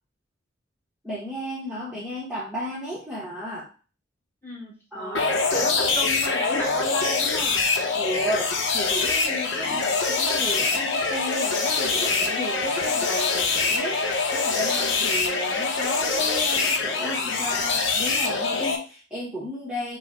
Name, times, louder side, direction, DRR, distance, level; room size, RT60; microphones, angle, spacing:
voice 1, 1.0-3.7 4.9-5.6 7.9-14.0 14.3-20.0, equal, 5° right, -7 dB, 0.8 m, -34 dB
voice 2, 4.4-7.6 9.6-9.9 12.8-13.0, equal, 10° left, -3 dB, 1.1 m, -34 dB
sound 1, 5.1-18.8, left 4 dB, 65° left, 0.7 m, -24 dB
4.8 x 2.1 x 4.1 m, 0.36 s
head